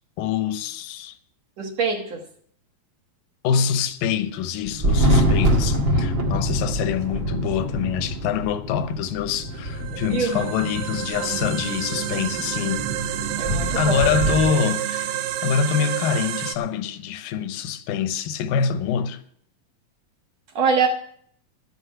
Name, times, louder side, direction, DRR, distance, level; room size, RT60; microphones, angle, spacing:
voice 1, 0.2-1.1 3.4-12.8 13.7-15.2 15.4-19.2, left 7 dB, 80° left, 2.5 m, -25 dB
voice 2, 1.6-2.2 10.1-10.5 11.2-11.3 13.4-14.1 20.6-20.9, right 5 dB, 60° right, 2.2 m, -24 dB
Thunder, 4.6-14.5, equal, 40° right, 1.9 m, -25 dB
sound 1, 9.5-16.6, right 11 dB, 75° right, 2.3 m, -28 dB
13.5 x 6.3 x 8.5 m
omnidirectional pair, 4.1 m